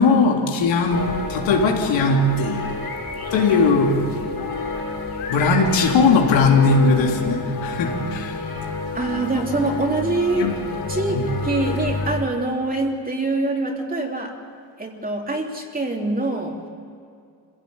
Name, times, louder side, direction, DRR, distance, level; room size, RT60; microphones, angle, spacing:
voice 1, 0.0-2.7 3.3-4.1 5.3-8.6 10.3-10.5 11.1-11.2, left 3 dB, 80° left, 0 dB, 3.6 m, -19 dB
sound 1, 0.9-12.2, left 3 dB, 55° left, 5.9 m, -29 dB
voice 2, 8.9-10.6 10.9-14.3 14.8-16.6, right 2 dB, 20° right, 0 dB, 3.3 m, -24 dB
25.5 x 17.0 x 8.8 m, 2.4 s
cardioid pair, 110°, 45 cm